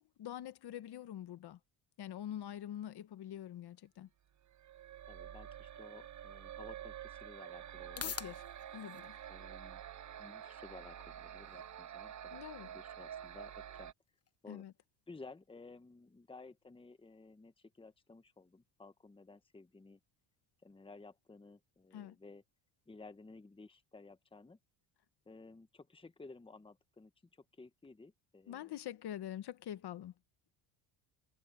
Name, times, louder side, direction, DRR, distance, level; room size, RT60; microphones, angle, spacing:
voice 1, 0.0-1.6 2.0-4.1 8.0-8.4 8.7-9.2 12.3-12.7 14.5-14.7 21.9-22.2 28.5-30.1, left 11 dB, 55° left, 1.5 m, -45 dB
sound 1, 4.4-13.9, right 10 dB, 35° right, 0.9 m, -48 dB
voice 2, 5.0-8.1 9.3-9.8 10.2-13.9 14.4-14.7 15.1-20.0 20.6-22.4 22.9-24.6 25.2-28.8, left 3 dB, 10° left, 1.3 m, -55 dB
sound 2, 7.4-23.4, left 7 dB, 30° left, 1.4 m, -55 dB
supercardioid pair, 90°, 48 cm